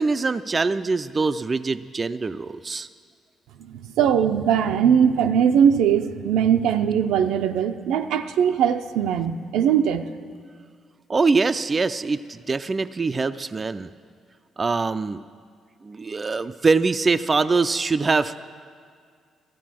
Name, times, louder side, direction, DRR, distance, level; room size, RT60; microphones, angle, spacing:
voice 1, 0.0-2.9 11.1-13.9 14.6-15.2 15.8-18.4, right 4 dB, 30° right, 11 dB, 0.4 m, -23 dB
voice 2, 3.6-10.1, right 8 dB, 90° right, 7 dB, 0.5 m, -20 dB
14.0 x 8.3 x 7.5 m, 2.1 s
cardioid pair, 90°, 0 cm